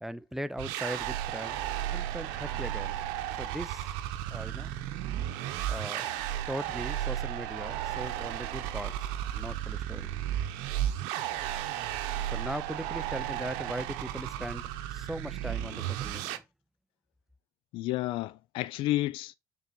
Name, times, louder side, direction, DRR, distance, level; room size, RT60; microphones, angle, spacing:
voice 1, 0.0-3.0 3.4-3.9 4.3-4.7 5.7-10.2 12.2-16.4, right 1 dB, 5° right, 0.7 m, -39 dB
sound 1, 0.6-16.4, right 12 dB, 85° right, 0.8 m, -34 dB
voice 2, 17.7-19.3, left 16 dB, 75° left, 0.4 m, -31 dB
6.9 x 4.0 x 4.0 m
supercardioid pair, 85°, 9 cm